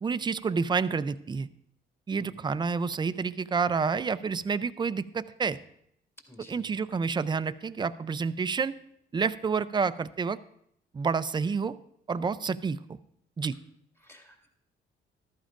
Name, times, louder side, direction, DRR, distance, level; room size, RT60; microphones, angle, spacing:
voice 1, 0.0-1.5 2.1-5.6 6.5-8.8 9.1-10.4 10.9-11.8 12.1-13.0 13.4-13.6, right 5 dB, 25° right, 13 dB, 0.4 m, -29 dB
voice 2, 6.3-6.8 14.0-14.5, left 2 dB, 10° left, 2 dB, 2.1 m, -53 dB
14.0 x 12.5 x 2.5 m, 0.71 s
cardioid pair, 90°, 20 cm